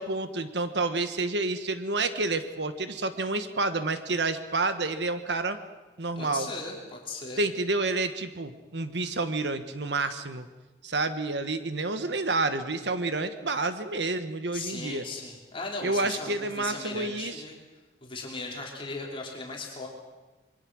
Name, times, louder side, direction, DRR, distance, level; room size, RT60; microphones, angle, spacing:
voice 1, 0.0-5.6 6.0-6.5 7.4-10.5 10.8-15.0 15.8-17.4, right 3 dB, 75° right, 10 dB, 1.4 m, -29 dB
voice 2, 6.2-7.4 14.5-17.6 18.0-19.9, left 3 dB, 30° left, -1 dB, 3.7 m, -37 dB
26.0 x 23.0 x 6.4 m, 1.2 s
head